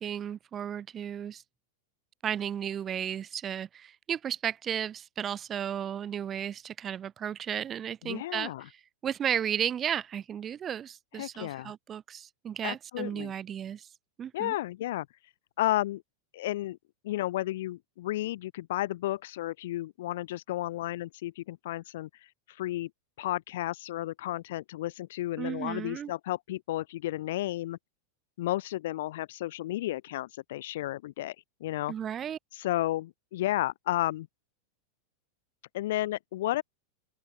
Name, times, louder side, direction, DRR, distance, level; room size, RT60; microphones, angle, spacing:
voice 1, 0.0-1.4 2.2-8.5 9.0-13.9 14.2-14.5 25.4-26.1 31.9-32.4, right 9 dB, 25° right, 1.4 m, -34 dB
voice 2, 8.0-8.6 11.1-11.7 12.6-13.3 14.3-15.1 15.6-16.0 16.3-16.8 17.0-22.1 22.5-22.9 23.2-27.8 28.4-31.3 31.6-31.9 32.5-34.3 35.7-36.6, left 15 dB, 55° left, 1.6 m, -32 dB
open air
figure-of-eight pair, 90°, 0 cm